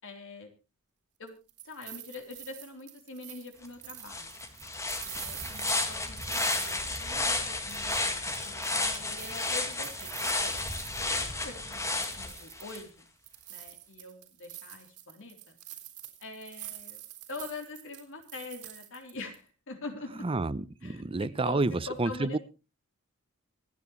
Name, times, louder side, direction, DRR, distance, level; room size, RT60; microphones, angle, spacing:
voice 1, 0.0-0.5 1.2-1.4 1.6-4.3 5.0-10.6 11.1-11.8 12.1-13.1 13.5-15.6 16.2-17.0 17.3-20.3 20.8-22.4, left 3 dB, 60° left, 3.6 m, -44 dB
sound 1, 1.3-7.4 7.7-11.5 11.7-12.9 13.2-19.4, right 14 dB, 85° right, 4.1 m, -46 dB
sound 2, 3.6-3.7 4.1-12.8, left 2 dB, 15° left, 1.9 m, -32 dB
voice 2, 20.2-22.4, right 3 dB, 25° right, 0.6 m, -29 dB
26.0 x 9.3 x 3.1 m
head